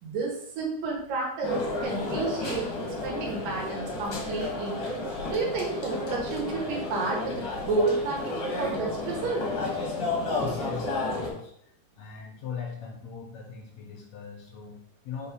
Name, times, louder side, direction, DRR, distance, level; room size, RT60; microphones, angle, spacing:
voice 1, 0.0-4.8 5.3-9.5, right 3 dB, 85° right, -1 dB, 3.1 m, -31 dB
sound 1, 1.4-11.3, left 2 dB, 45° left, 1.7 m, -32 dB
voice 2, 10.4-11.7 12.0-15.3, left 6 dB, 70° left, 2 dB, 1.9 m, -40 dB
6.9 x 4.7 x 3.6 m, 0.70 s
omnidirectional pair, 3.8 m